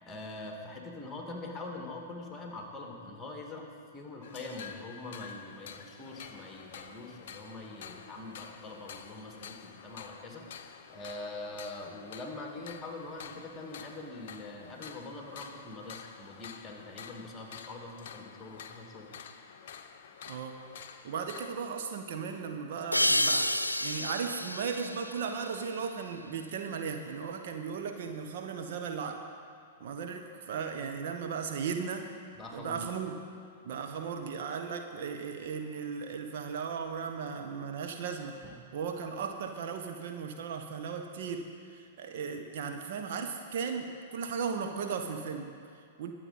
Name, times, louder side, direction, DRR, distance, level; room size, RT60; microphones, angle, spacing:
voice 1, 0.0-3.7 3.9-10.4 10.9-19.1 32.4-32.8 38.4-38.5, left 2 dB, 15° left, 1 dB, 2.0 m, -43 dB
sound 1, 4.2-21.6, left 7 dB, 55° left, 0.8 m, -49 dB
voice 2, 21.0-29.2 29.8-32.1 32.5-33.1 33.6-38.4 38.7-46.1, right 6 dB, 50° right, 4 dB, 1.0 m, -36 dB
sound 2, 22.9-26.3, left 1 dB, 85° left, 0.5 m, -31 dB
22.0 x 7.8 x 4.1 m, 2.3 s
figure-of-eight pair, 105°, 0 cm